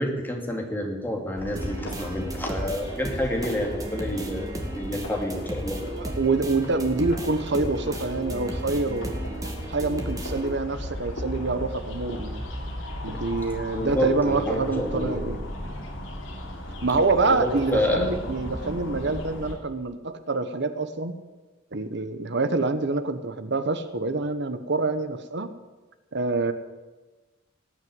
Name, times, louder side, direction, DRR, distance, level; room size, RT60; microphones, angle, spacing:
voice 1, 0.0-5.8 13.7-15.2 17.3-18.1, left 1 dB, 10° left, 0 dB, 2.4 m, -28 dB
sound 1, 1.4-19.6, left 1 dB, 70° left, 3.2 m, -36 dB
sound 2, 1.6-10.6, right 1 dB, 20° right, 2.0 m, -36 dB
voice 2, 5.9-9.1 9.7-12.4 13.0-15.4 16.8-21.1 21.7-25.5 26.1-26.5, right 3 dB, 60° right, 10 dB, 1.1 m, -26 dB
18.5 x 6.5 x 9.5 m, 1.2 s
head